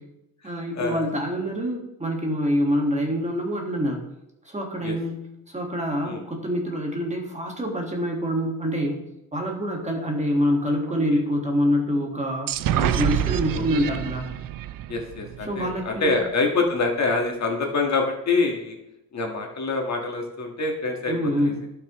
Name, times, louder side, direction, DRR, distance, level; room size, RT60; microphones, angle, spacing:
voice 1, 0.4-4.0 4.5-5.2 5.5-9.0 9.3-12.5 12.9-14.3 15.4-16.2 21.1-21.6, equal, 20° right, 1 dB, 1.7 m, -25 dB
sound 1, 12.5-16.1, right 12 dB, 60° right, 0.5 m, -27 dB
voice 2, 14.9-18.8 19.1-21.7, left 3 dB, 45° left, 2 dB, 1.6 m, -26 dB
16.0 x 5.9 x 3.0 m, 0.86 s
cardioid pair, 135°, 38 cm